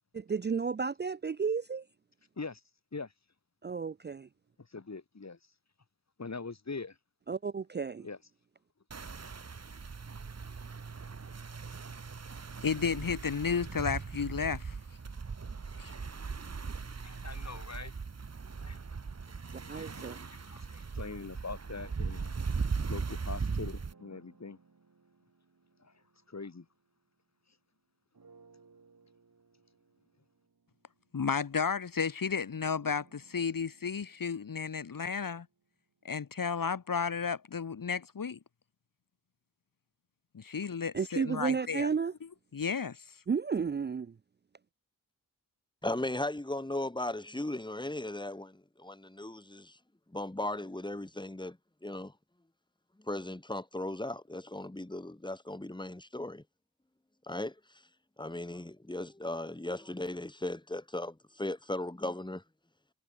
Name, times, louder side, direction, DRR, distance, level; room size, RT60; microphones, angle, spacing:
voice 1, 0.1-1.9 3.6-4.3 7.3-8.1 19.7-20.3 40.9-42.1 43.3-44.2, right 5 dB, 30° right, 0.4 m, -32 dB
voice 2, 4.6-5.4 6.2-7.0 8.0-8.2 17.0-18.0 18.6-18.8 19.5-22.4 22.9-24.6 25.8-26.7, left 4 dB, 50° left, 3.2 m, -43 dB
sound 1, 8.9-23.9, right 5 dB, 45° right, 1.3 m, -39 dB
voice 3, 12.6-14.8 15.8-15.9 31.1-35.5 36.0-38.4 40.3-41.9 42.5-43.0, left 6 dB, 70° left, 1.6 m, -33 dB
sound 2, 19.4-23.0 23.8-27.6 28.1-36.1, right 4 dB, 70° right, 7.3 m, -64 dB
voice 4, 45.8-49.8 50.1-51.6 51.8-52.1 53.0-56.4 57.3-57.5 58.2-62.4, left 1 dB, 15° left, 2.2 m, -37 dB
wide cardioid pair, 65°, 35 cm